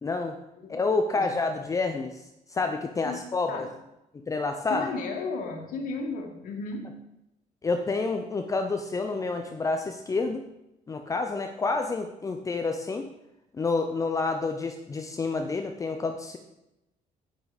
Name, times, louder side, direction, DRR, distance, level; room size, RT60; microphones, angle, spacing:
voice 1, 0.0-0.4 0.7-2.2 2.5-3.7 4.3-4.9 7.6-10.4 10.9-13.1 13.5-16.4, left 3 dB, 25° left, 5 dB, 0.7 m, -28 dB
voice 2, 3.0-3.7 4.7-6.9, left 3 dB, 75° left, 2 dB, 2.3 m, -34 dB
9.8 x 8.8 x 5.2 m, 0.92 s
cardioid pair, 140°, 14 cm